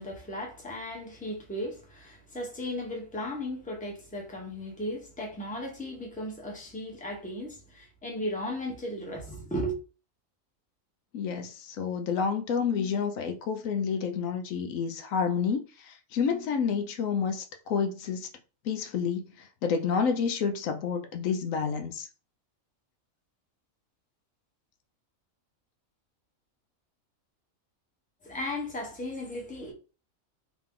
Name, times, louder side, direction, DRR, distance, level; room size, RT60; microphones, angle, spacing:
voice 1, 0.0-9.7 28.2-29.7, equal, 5° left, 0.9 m, -36 dB
voice 2, 11.1-18.3 18.6-22.1, left 6 dB, 75° left, 1.0 m, -29 dB
3.0 x 2.9 x 3.7 m
omnidirectional pair, 1.4 m